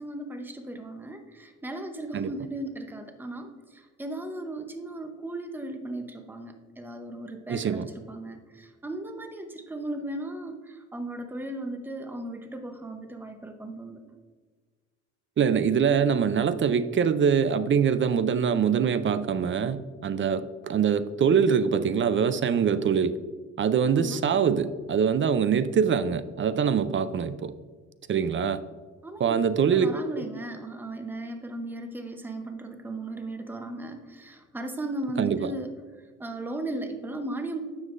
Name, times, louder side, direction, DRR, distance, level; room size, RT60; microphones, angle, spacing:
voice 1, 0.0-14.0 24.0-24.2 29.0-35.7 36.2-37.6, right 1 dB, 5° right, 6 dB, 0.8 m, -36 dB
voice 2, 7.5-7.9 15.4-23.1 23.6-27.5 28.1-28.6 29.2-29.9 30.2-30.3 35.2-35.5, right 7 dB, 40° right, 14 dB, 0.5 m, -24 dB
9.5 x 7.2 x 2.5 m, 1.5 s
cardioid pair, 90°, 30 cm